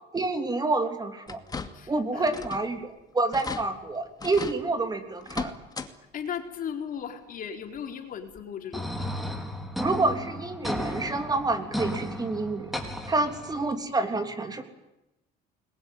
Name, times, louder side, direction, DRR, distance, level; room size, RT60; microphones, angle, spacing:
voice 1, 0.1-1.4 1.9-5.5 9.8-12.7 13.1-14.6, right 3 dB, 20° right, 7 dB, 3.3 m, -28 dB
sound 1, 1.3-1.9 2.3-2.7 3.0-3.1 3.3-3.6 4.2-4.6 5.2-5.9 6.3-6.4 7.8-7.9 8.4-8.5, left 4 dB, 20° left, 2.4 m, -36 dB
voice 2, 1.7-2.6 6.1-9.1 13.2-13.3, left 8 dB, 50° left, 5 dB, 4.4 m, -37 dB
sound 2, 8.7-13.7, equal, ahead, 4.4 m, -34 dB
29.0 x 21.5 x 9.5 m, 0.94 s
cardioid pair, 120°, 18 cm